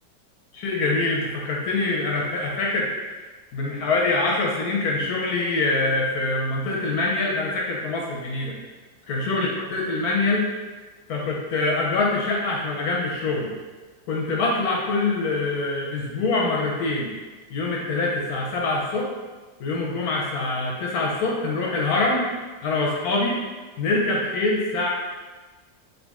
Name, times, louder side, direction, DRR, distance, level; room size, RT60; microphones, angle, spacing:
voice 1, 0.5-2.9 3.5-8.6 9.1-10.5 11.1-13.5 14.1-17.1 17.5-19.1 19.6-22.2 22.6-23.4 23.8-24.9, left 3 dB, 65° left, -2 dB, 1.0 m, -24 dB
3.8 x 3.4 x 3.6 m, 1.3 s
omnidirectional pair, 2.0 m